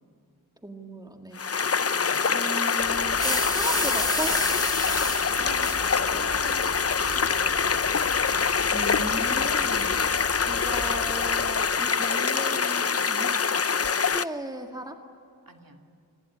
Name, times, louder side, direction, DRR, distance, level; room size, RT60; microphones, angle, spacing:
voice 1, 0.6-1.4 2.3-4.4 8.7-10.0 10.4-13.3 14.1-15.0, right 1 dB, 10° right, 4 dB, 2.0 m, -36 dB
sound 1, 1.4-14.2, left 6 dB, 40° left, 0.6 m, -25 dB
voice 2, 1.8-2.4 5.2-7.9 15.5-15.8, right 2 dB, 60° right, 3 dB, 2.7 m, -45 dB
sound 2, 2.8-11.5, equal, 80° right, 5.4 m, -43 dB
sound 3, 3.2-8.5, left 1 dB, 10° left, 2.4 m, -30 dB
27.5 x 20.5 x 8.7 m, 2.4 s
wide cardioid pair, 70°, 38 cm